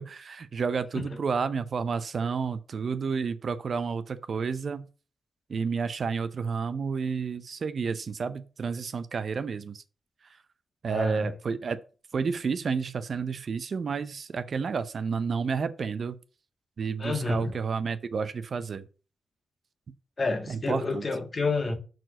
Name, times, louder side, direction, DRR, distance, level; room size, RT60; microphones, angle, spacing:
voice 1, 0.0-4.9 5.5-9.8 10.8-11.8 12.1-16.2 16.8-18.9 20.5-21.0, right 5 dB, 50° right, 0.6 m, -30 dB
voice 2, 10.9-11.3 17.0-17.5 20.2-21.8, left 3 dB, 40° left, 1.4 m, -29 dB
6.0 x 4.7 x 6.1 m
cardioid pair, 100°, 0 cm